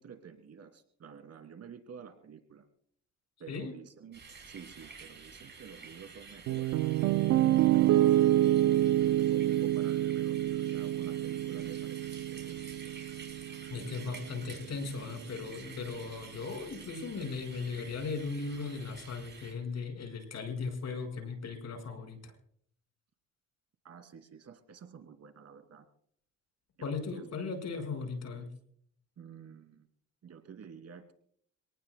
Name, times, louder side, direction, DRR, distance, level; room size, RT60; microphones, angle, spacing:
voice 1, 0.0-2.7 3.4-4.2 4.5-6.8 7.7-8.7 9.0-12.0 12.3-12.9 23.8-25.9 26.8-27.3 29.2-29.9 30.2-31.1, right 7 dB, 55° right, 6 dB, 2.7 m, -50 dB
sound 1, 4.1-19.5, right 5 dB, 35° right, 5.6 m, -50 dB
Piano, 6.5-14.6, right 13 dB, 75° right, 0.5 m, -27 dB
voice 2, 13.7-22.3 26.8-28.5, left 4 dB, 60° left, 6 dB, 5.1 m, -37 dB
27.0 x 19.0 x 2.2 m, 0.64 s
cardioid pair, 90°, 30 cm